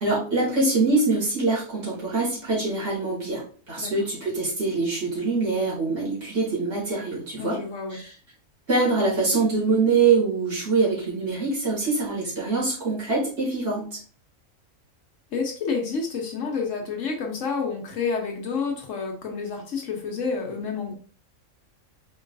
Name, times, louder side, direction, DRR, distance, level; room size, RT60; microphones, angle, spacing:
voice 1, 0.0-7.6 7.9-8.1 8.7-14.0, right 3 dB, 55° right, -7 dB, 2.4 m, -24 dB
voice 2, 7.4-8.0 15.3-20.9, left 5 dB, 70° left, 1 dB, 1.1 m, -29 dB
4.5 x 3.1 x 2.6 m, 0.42 s
omnidirectional pair, 1.4 m